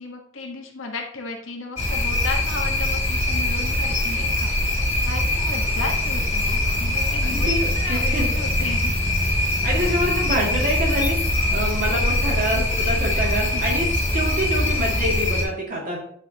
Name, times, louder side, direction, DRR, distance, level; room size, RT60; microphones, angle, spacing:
voice 1, 0.0-9.0 13.1-13.6, left 3 dB, 80° left, 1 dB, 1.3 m, -35 dB
sound 1, 1.8-15.4, left 1 dB, 35° left, 1.7 m, -22 dB
voice 2, 7.2-8.3 9.4-11.2 11.5-16.0, equal, 45° right, -3 dB, 2.3 m, -26 dB
8.9 x 4.8 x 2.9 m, 0.65 s
head